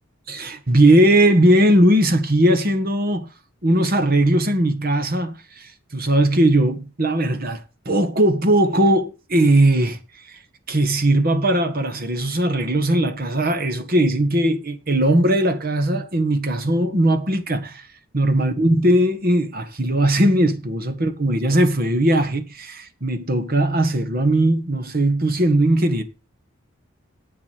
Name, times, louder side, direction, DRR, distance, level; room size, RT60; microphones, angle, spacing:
voice 1, 0.3-3.3 3.6-10.0 10.3-10.4 10.7-17.9 18.1-26.0, right 1 dB, 45° right, 1.5 m, -19 dB
8.5 x 7.6 x 8.4 m
head